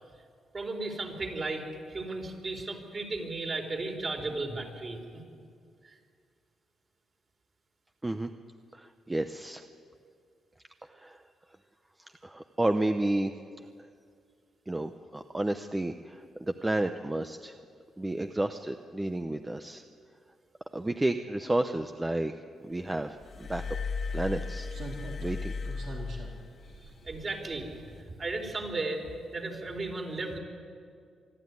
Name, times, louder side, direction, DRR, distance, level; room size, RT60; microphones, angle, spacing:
voice 1, 0.5-5.2 27.0-27.9 28.2-29.0 29.3-30.4, right 2 dB, 40° right, 2 dB, 4.2 m, -35 dB
voice 2, 8.7-9.6 11.0-11.2 12.2-13.3 14.7-17.5 18.0-19.8 20.7-22.3 22.6-23.6 24.1-24.7 25.2-25.5, right 1 dB, 15° right, 7 dB, 0.8 m, -31 dB
Glass, 23.2-26.8 27.8-28.0, left 4 dB, 45° left, 1.8 m, -36 dB
Slam, 23.3-23.4 24.7-28.2 28.5-28.7, right 2 dB, 70° right, 4.3 m, -45 dB
25.5 x 12.5 x 9.7 m, 2.3 s
cardioid pair, 100°, 0 cm